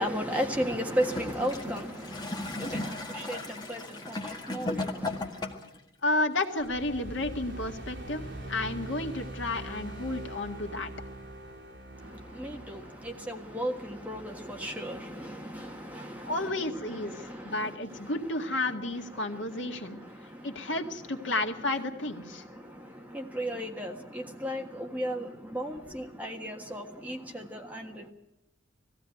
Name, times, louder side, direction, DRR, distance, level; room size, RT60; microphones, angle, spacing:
voice 1, 0.0-5.5 12.0-16.5 16.8-18.1 19.5-20.7 22.3-28.1, equal, 10° right, 1.6 m, -36 dB
Gurgling / Toilet flush, 0.9-5.8 6.6-6.7, left 2 dB, 20° left, 1.7 m, -36 dB
voice 2, 6.0-10.9 16.2-20.0 20.4-22.4, left 2 dB, 70° left, 1.9 m, -32 dB
sound 1, 6.6-17.1, right 1 dB, 60° right, 3.8 m, -44 dB
20.0 x 15.5 x 9.3 m
head